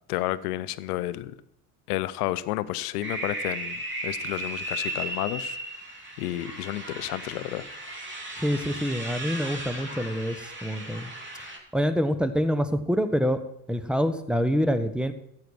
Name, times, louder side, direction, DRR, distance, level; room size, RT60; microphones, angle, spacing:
voice 1, 0.1-1.3 1.9-5.6 6.2-7.6, left 15 dB, 70° left, 16 dB, 0.8 m, -31 dB
sound 1, 3.0-11.6, right 1 dB, 25° right, 3.1 m, -36 dB
voice 2, 8.4-11.1 11.7-13.4 13.7-15.1, equal, ahead, 11 dB, 1.1 m, -26 dB
14.0 x 8.6 x 4.4 m, 0.75 s
hypercardioid pair, 65°, 47 cm